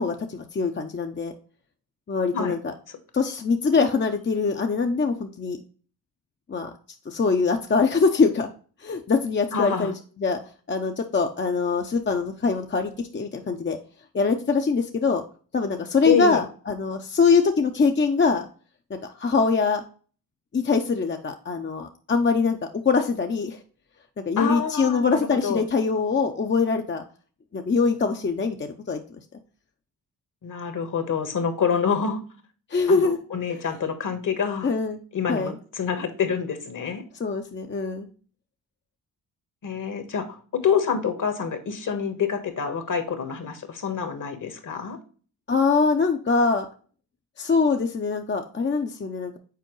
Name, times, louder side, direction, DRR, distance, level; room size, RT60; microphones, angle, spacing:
voice 1, 0.0-1.3 2.1-2.7 3.1-5.6 6.5-6.7 7.1-8.5 8.8-9.9 10.2-10.4 10.7-13.8 14.1-15.2 15.5-18.5 19.0-19.8 20.5-22.6 22.8-23.6 24.3-27.0 27.5-29.0 32.7-33.2 33.5-33.6 34.6-35.0 35.3-35.6 37.2-38.1 45.5-46.7 47.4-49.4, left 4 dB, 30° left, 4 dB, 0.7 m, -23 dB
voice 2, 9.5-9.9 16.1-16.4 24.4-25.6 30.4-32.2 32.9-34.7 35.1-37.0 39.6-45.0, left 6 dB, 55° left, 8 dB, 1.4 m, -27 dB
6.8 x 4.4 x 3.1 m, 0.40 s
supercardioid pair, 50°, 38 cm